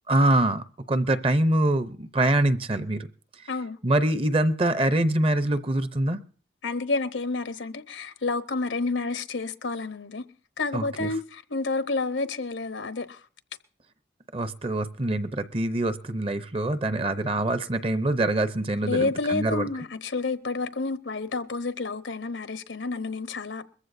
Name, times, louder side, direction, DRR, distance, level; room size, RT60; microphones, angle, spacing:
voice 1, 0.1-3.1 3.8-6.2 10.7-11.1 14.3-19.7, right 1 dB, 30° right, 0.6 m, -24 dB
voice 2, 3.5-3.8 6.6-10.2 10.6-13.2 18.8-23.7, left 3 dB, 80° left, 0.9 m, -29 dB
22.0 x 14.5 x 2.6 m
head